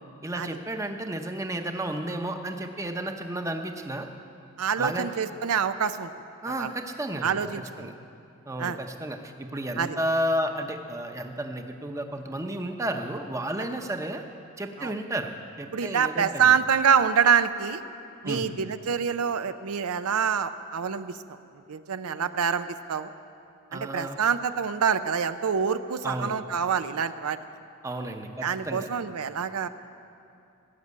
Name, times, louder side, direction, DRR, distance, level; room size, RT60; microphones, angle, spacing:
voice 1, 0.2-4.1 4.8-5.1 6.4-7.9 8.5-14.2 14.6-15.3 15.6-16.5 18.2-18.5 23.7-24.2 26.0-26.3 27.8-28.9, right 1 dB, 15° right, 5 dB, 0.7 m, -32 dB
voice 2, 4.6-6.1 6.5-6.7 7.2-7.9 8.6-8.8 9.8-10.0 14.8-14.9 15.7-17.8 18.2-21.2 21.7-23.1 23.7-27.4 28.4-29.7, right 7 dB, 85° right, 11 dB, 0.5 m, -26 dB
16.0 x 7.4 x 9.5 m, 2.6 s
head